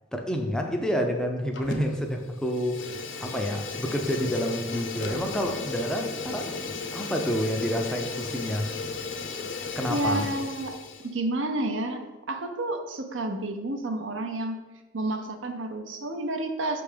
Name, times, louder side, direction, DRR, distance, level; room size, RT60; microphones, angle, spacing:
voice 1, 0.1-6.6 6.9-8.7 9.8-10.3, equal, 5° left, 2 dB, 0.5 m, -29 dB
Fire, 1.5-2.1 2.3-11.1, left 4 dB, 60° left, 0.7 m, -35 dB
voice 2, 9.9-10.8 11.0-14.6 14.9-16.8, right 2 dB, 65° right, 5 dB, 0.7 m, -30 dB
6.3 x 3.5 x 5.0 m, 1.2 s
head